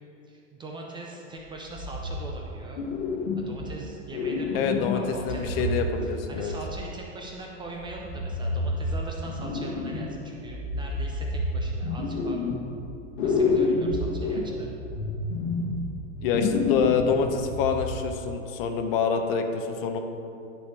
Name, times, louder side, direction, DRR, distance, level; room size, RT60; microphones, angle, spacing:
voice 1, 0.2-2.8 3.4-12.5 13.2-14.7, right 2 dB, 10° right, -1 dB, 0.5 m, -41 dB
sound 1, 1.7-2.5 2.8-3.8 4.1-7.0 7.8-10.1 10.4-12.9 13.2-18.1, left 3 dB, 70° left, 1.4 m, -29 dB
voice 2, 4.5-6.5 15.6-15.8 16.2-20.0, left 5 dB, 50° left, 6 dB, 0.8 m, -26 dB
10.0 x 4.3 x 4.8 m, 2.7 s
hypercardioid pair, 130°, 38 cm